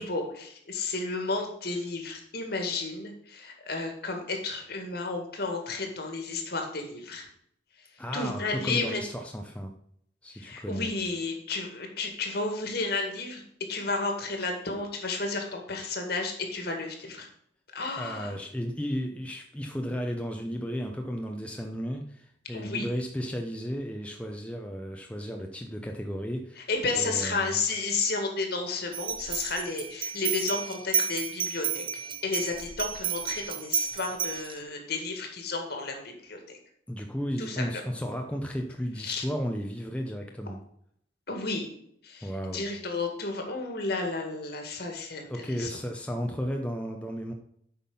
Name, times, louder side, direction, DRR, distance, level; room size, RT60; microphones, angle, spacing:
voice 1, 0.0-7.3 8.1-9.0 10.3-13.4 13.7-17.3 17.7-18.3 22.5-22.9 26.6-31.8 32.2-36.6 37.4-37.6 39.0-39.2 41.3-41.6 42.0-45.7, left 3 dB, 60° left, 3 dB, 2.0 m, -32 dB
voice 2, 8.0-9.7 10.2-10.9 18.0-26.7 26.9-27.6 36.9-40.6 42.2-42.6 45.3-47.3, equal, 5° left, 2 dB, 0.7 m, -34 dB
sound 1, 28.9-34.6, right 8 dB, 25° right, 0.5 m, -32 dB
8.4 x 5.8 x 5.4 m, 0.69 s
head